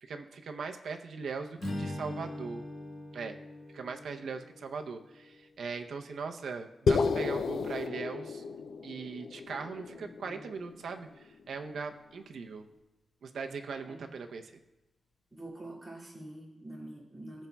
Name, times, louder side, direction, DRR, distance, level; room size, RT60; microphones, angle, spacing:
voice 1, 0.0-2.6 3.1-3.4 3.7-8.4 8.8-12.7 13.2-14.5, right 5 dB, 80° right, 5 dB, 0.7 m, -40 dB
Strum, 1.6-6.0, left 1 dB, 55° left, 1.7 m, -42 dB
sound 1, 6.9-11.2, left 5 dB, 75° left, 0.5 m, -32 dB
voice 2, 15.3-17.5, right 1 dB, 15° right, -6 dB, 2.3 m, -46 dB
16.0 x 7.2 x 2.3 m, 0.98 s
wide cardioid pair, 150°, 0 cm